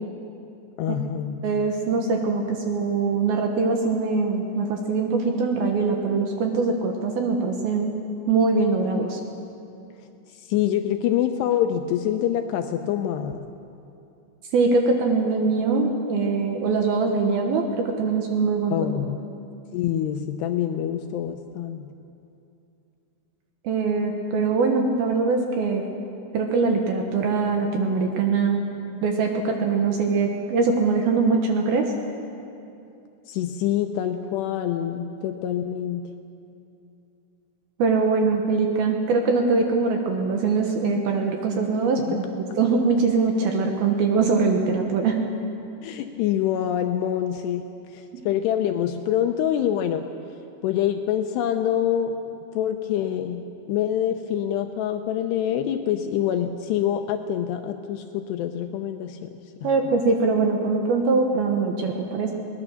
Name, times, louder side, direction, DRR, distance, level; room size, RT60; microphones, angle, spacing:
voice 1, 0.8-1.4 10.4-13.5 18.7-19.2 19.7-21.9 33.3-36.1 42.1-42.2 45.8-47.7 47.9-50.0 50.6-52.1 52.5-53.4 53.7-59.3 59.6-59.7, left 10 dB, 80° left, 6 dB, 2.5 m, -25 dB
voice 2, 1.4-7.9 8.3-9.2 14.5-18.7 23.6-25.8 26.3-28.6 29.0-31.9 37.8-42.0 42.3-45.2 59.6-62.3, right 4 dB, 65° right, 2 dB, 2.7 m, -22 dB
22.0 x 18.5 x 6.4 m, 2.7 s
omnidirectional pair, 5.4 m